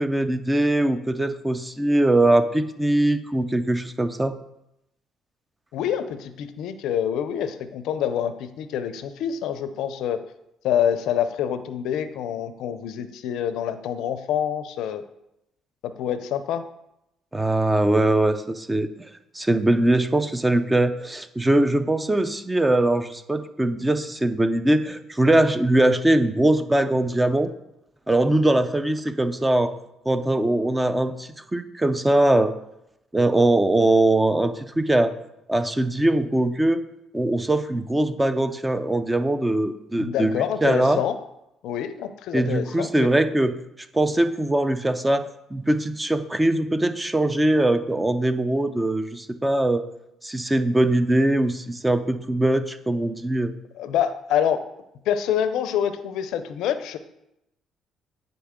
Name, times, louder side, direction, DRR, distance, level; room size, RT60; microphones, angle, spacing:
voice 1, 0.0-4.4 17.3-18.9 19.3-27.5 28.1-29.7 30.1-32.5 33.1-35.1 35.5-36.8 37.1-40.3 40.6-41.0 42.3-43.6 43.9-49.8 50.2-53.5, right 1 dB, 15° right, 10 dB, 0.5 m, -21 dB
voice 2, 5.7-10.2 10.6-15.0 16.0-16.6 40.0-41.2 41.6-43.1 53.8-54.6 55.1-57.0, left 9 dB, 75° left, 11 dB, 0.5 m, -26 dB
8.7 x 3.9 x 3.6 m, 0.84 s
supercardioid pair, 80°, 0 cm